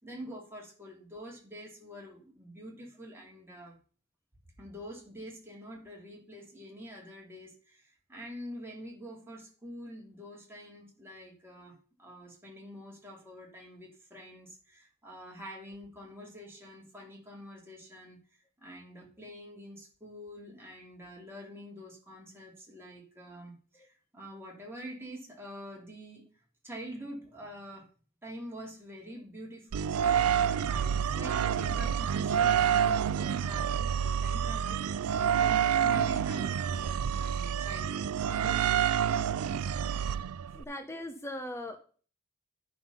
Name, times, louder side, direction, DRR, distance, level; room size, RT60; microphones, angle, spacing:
voice 1, 0.0-3.8 4.6-26.2 26.6-27.9 28.2-38.9, equal, 10° right, -2 dB, 2.7 m, -46 dB
sound 1, 29.7-40.6, right 8 dB, 80° right, 0.4 m, -28 dB
voice 2, 40.5-41.8, left 1 dB, 10° left, 5 dB, 0.8 m, -39 dB
9.9 x 5.7 x 5.6 m, 0.41 s
head